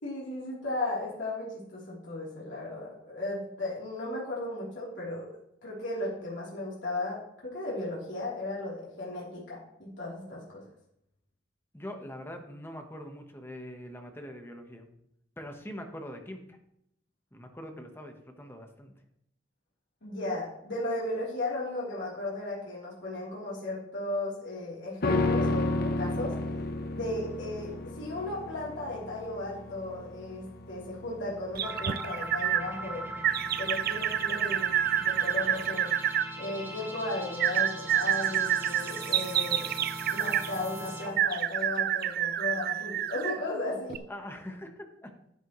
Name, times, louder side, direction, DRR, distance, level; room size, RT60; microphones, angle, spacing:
voice 1, 0.0-5.3 5.6-7.2 7.4-10.6 20.0-26.3 26.9-33.1 33.6-35.9 36.4-39.7 40.0-44.0, left 2 dB, 75° left, -6 dB, 3.4 m, -35 dB
voice 2, 11.7-14.9 15.4-16.6 17.3-18.9 44.1-45.1, equal, 15° left, 4 dB, 1.2 m, -43 dB
sound 1, 25.0-34.4 34.7-34.8, left 2 dB, 55° left, 0.9 m, -32 dB
sound 2, 31.6-41.3, right 1 dB, 10° right, 1.7 m, -40 dB
sound 3, 31.6-32.6 33.2-36.3 37.4-40.5 41.2-43.4 43.9-44.0, right 10 dB, 55° right, 0.4 m, -28 dB
11.0 x 9.9 x 3.1 m, 0.76 s
head